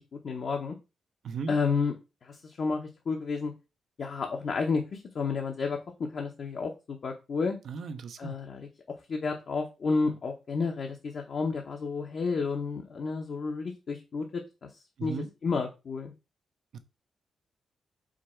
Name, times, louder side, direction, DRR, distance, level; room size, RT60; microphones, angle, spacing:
voice 1, 0.1-0.7 1.5-1.9 2.2-3.5 4.0-5.8 6.1-7.6 8.2-8.7 9.1-14.3 15.0-16.1, left 4 dB, 60° left, 0.7 m, -31 dB
voice 2, 1.2-1.5 7.6-8.4 15.0-15.3 16.7-16.8, right 5 dB, 70° right, 0.6 m, -36 dB
4.9 x 2.3 x 4.2 m
cardioid pair, 90°, 0 cm